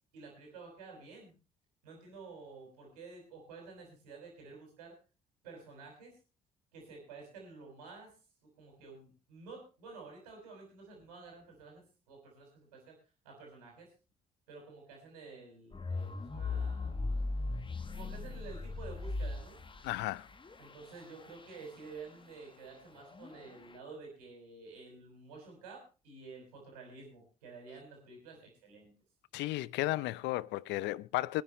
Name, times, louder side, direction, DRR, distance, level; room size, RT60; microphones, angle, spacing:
voice 1, 0.1-1.4 1.8-4.9 5.4-6.2 6.7-8.1 8.4-12.9 13.2-13.9 14.5-16.9 17.8-19.6 20.6-28.9, right 4 dB, 80° right, 5.7 m, -51 dB
sound 1, 15.7-21.7 23.0-23.8, left 3 dB, 25° left, 1.4 m, -38 dB
voice 2, 19.8-20.3 29.3-31.4, left 17 dB, 65° left, 0.6 m, -34 dB
25.5 x 9.9 x 3.1 m
figure-of-eight pair, 45°, 20 cm